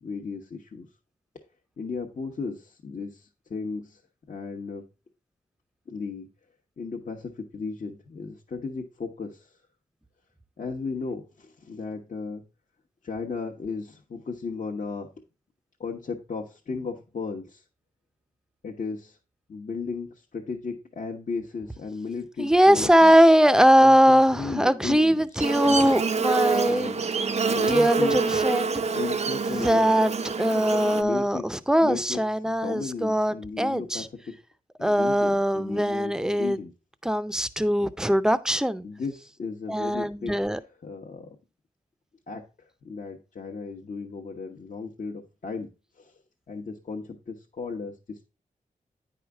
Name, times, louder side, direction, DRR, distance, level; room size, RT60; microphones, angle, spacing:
voice 1, 0.0-0.9 1.8-4.0 4.3-4.8 5.9-6.3 6.8-9.6 10.6-12.4 13.0-15.1 15.8-17.6 18.6-19.2 19.5-23.2 23.8-25.4 26.7-27.0 27.5-28.2 28.9-29.9 30.9-31.5 31.8-34.4 34.8-36.7 38.8-41.4 42.3-45.7 46.0-46.2 46.5-48.3, left 4 dB, 65° left, 1.0 m, -35 dB
voice 2, 22.4-26.9 27.5-28.8 29.5-30.1 30.4-34.1 34.8-36.6 37.0-38.9 39.7-40.6, equal, 5° right, 0.5 m, -21 dB
Buzz, 25.4-31.0, right 4 dB, 50° right, 0.5 m, -26 dB
9.5 x 4.8 x 3.4 m
wide cardioid pair, 80°, 14 cm